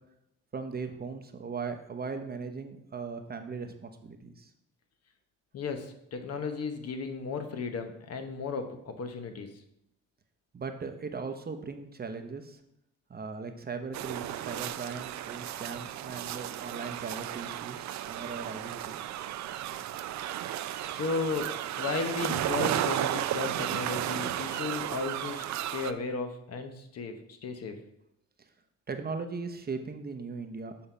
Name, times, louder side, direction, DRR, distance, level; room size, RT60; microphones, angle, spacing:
voice 1, 0.5-4.5 10.5-12.6 13.1-19.0 28.9-30.9, right 4 dB, 30° right, 7 dB, 0.8 m, -38 dB
voice 2, 5.5-9.6 20.3-27.8, left 4 dB, 55° left, 6 dB, 1.0 m, -35 dB
sound 1, 13.9-25.9, right 12 dB, 65° right, 0.5 m, -34 dB
7.0 x 3.9 x 5.5 m, 0.78 s
cardioid pair, 90°, 30 cm